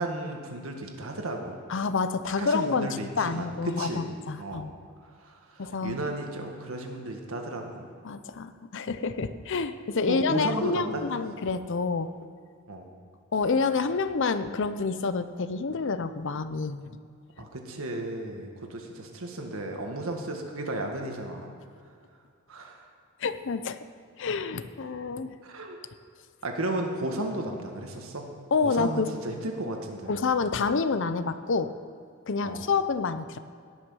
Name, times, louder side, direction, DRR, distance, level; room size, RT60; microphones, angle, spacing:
voice 1, 0.0-1.6 2.4-4.0 4.4-4.7 5.2-7.9 10.1-11.1 12.7-12.9 17.4-21.5 22.5-22.8 25.4-25.8 26.4-28.3 28.6-30.1 32.4-32.7, right 1 dB, 80° right, 2 dB, 1.7 m, -34 dB
voice 2, 1.7-4.7 5.6-6.0 8.0-12.1 13.3-16.8 23.2-23.8 24.2-25.4 28.5-29.1 30.1-31.7 32.3-33.4, left 4 dB, 60° left, 11 dB, 0.6 m, -28 dB
17.5 x 6.2 x 6.2 m, 2.3 s
head